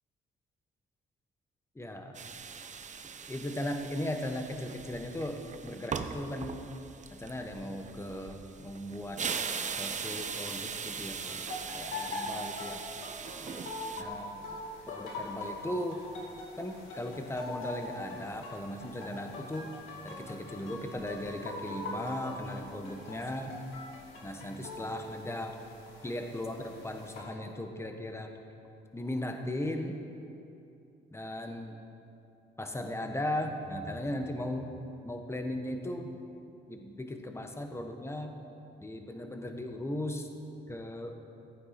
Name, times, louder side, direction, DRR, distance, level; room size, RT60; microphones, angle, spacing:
voice 1, 1.7-2.2 3.3-6.6 7.1-9.2 9.7-11.5 11.7-12.8 14.0-14.6 14.9-16.0 16.6-19.8 20.0-23.6 24.2-25.6 26.0-28.3 28.9-30.0 31.1-31.8 32.6-34.7 35.0-36.1 36.7-38.3 38.8-40.3 40.7-41.2, left 1 dB, 15° left, 4 dB, 1.2 m, -37 dB
sound 1, 2.1-14.0, right 6 dB, 35° right, 0.7 m, -40 dB
sound 2, 9.5-27.2, left 2 dB, 85° left, 2.3 m, -43 dB
15.0 x 9.2 x 4.4 m, 2.7 s
cardioid pair, 90°, 20 cm